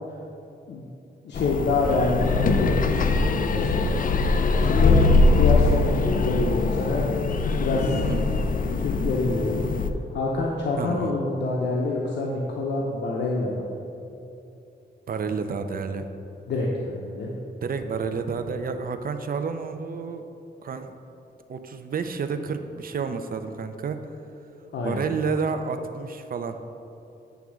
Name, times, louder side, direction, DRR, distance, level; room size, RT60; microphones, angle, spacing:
voice 1, 1.2-3.9 4.6-5.0 5.4-7.1 7.6-7.9 8.8-9.6 10.1-13.7 16.5-17.3 24.7-25.0, left 3 dB, 90° left, -2 dB, 0.8 m, -26 dB
sound 1, 1.3-9.9, left 3 dB, 55° left, 0.4 m, -22 dB
voice 2, 4.6-4.9 7.9-8.3 10.8-11.1 15.1-16.1 17.6-20.2 20.6-20.9 21.5-24.0 24.8-26.6, right 5 dB, 55° right, 8 dB, 0.5 m, -30 dB
9.2 x 3.5 x 6.3 m, 2.8 s
wide cardioid pair, 105°, 17 cm